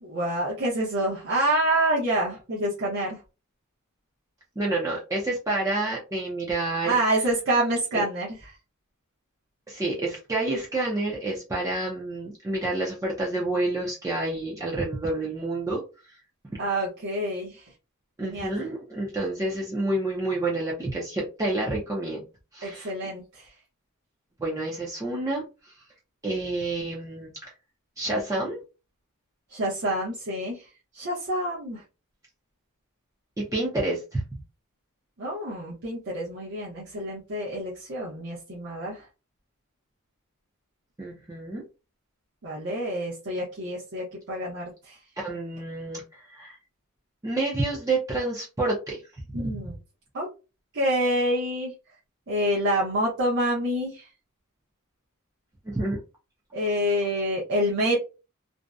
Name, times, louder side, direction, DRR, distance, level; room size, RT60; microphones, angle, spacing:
voice 1, 0.0-3.2 6.8-8.5 16.6-17.7 18.2-18.5 22.6-23.5 29.5-30.6 30.9-31.8 35.2-39.0 42.4-45.0 49.3-49.7 50.1-50.3 50.7-51.7 52.3-54.1 56.5-58.0, right 1 dB, 55° right, -6 dB, 0.7 m, -27 dB
voice 2, 4.6-7.0 7.9-8.0 9.7-15.8 18.2-22.2 22.5-22.9 24.4-25.4 26.2-27.3 28.0-28.6 33.4-34.2 41.0-41.6 45.2-46.0 46.3-46.5 47.2-49.0 55.7-56.0, right 2 dB, 15° right, -4 dB, 0.5 m, -28 dB
2.6 x 2.1 x 2.3 m, 0.31 s
head